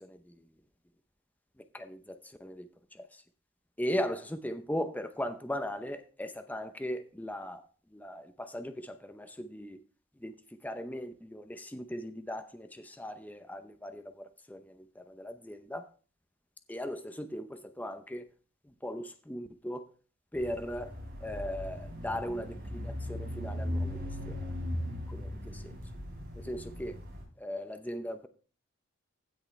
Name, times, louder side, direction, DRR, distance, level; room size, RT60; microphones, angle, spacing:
voice 1, 3.8-7.6 8.0-8.9 9.1-9.8 10.2-10.3 10.6-12.7 13.0-14.0 15.2-15.8 16.7-17.5 17.8-18.2 18.8-19.8 20.3-20.9 21.2-24.0 24.3-24.4 26.5-26.9 27.4-28.3, equal, 10° left, 9 dB, 0.7 m, -37 dB
sound 1, 20.3-27.2, left 1 dB, 45° right, 3.9 m, -38 dB
15.5 x 6.4 x 3.3 m, 0.38 s
head